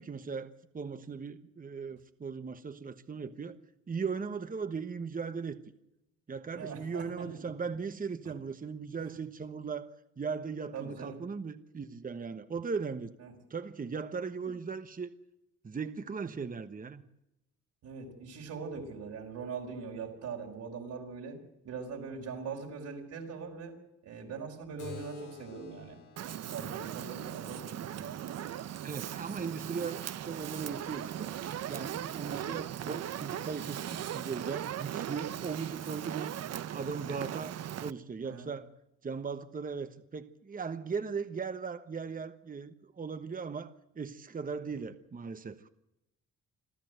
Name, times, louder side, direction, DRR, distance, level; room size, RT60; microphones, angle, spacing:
voice 1, 0.0-3.6 3.9-5.6 6.3-13.1 13.5-15.1 15.6-17.0 28.8-31.3 31.7-36.3 36.7-38.7 39.0-45.7, right 5 dB, 30° right, 1.2 m, -38 dB
voice 2, 6.5-7.5 8.2-8.3 9.0-9.1 10.7-11.2 13.2-13.3 17.8-21.4 21.7-23.7 24.0-26.0 26.4-28.1 32.2-32.5 38.2-38.5, right 5 dB, 75° right, 5.2 m, -41 dB
Keyboard (musical), 24.8-29.9, left 6 dB, 80° left, 3.8 m, -53 dB
Fire, 26.2-37.9, right 10 dB, 55° right, 0.8 m, -39 dB
26.5 x 14.5 x 8.0 m
cardioid pair, 90°, 30 cm